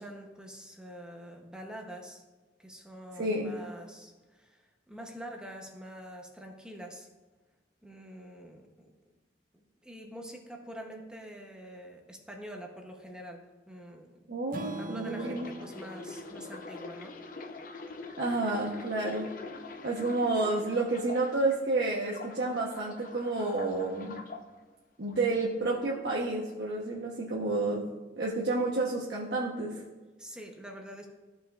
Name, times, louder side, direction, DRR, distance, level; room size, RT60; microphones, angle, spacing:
voice 1, 0.0-2.2 2.6-7.1 7.8-8.9 9.5-14.4 14.8-17.2 30.2-31.1, equal, 5° right, 2 dB, 0.8 m, -46 dB
voice 2, 3.2-3.6 14.3-15.5 18.2-19.3 19.8-24.2 25.0-27.8 28.2-29.8, right 2 dB, 75° right, -4 dB, 1.0 m, -30 dB
Strum, 14.5-18.7, right 1 dB, 50° right, 0.7 m, -45 dB
sound 1, 15.0-21.6 22.0-24.4 25.1-25.3, left 3 dB, 50° left, 0.7 m, -44 dB
14.0 x 6.0 x 2.4 m, 1.2 s
head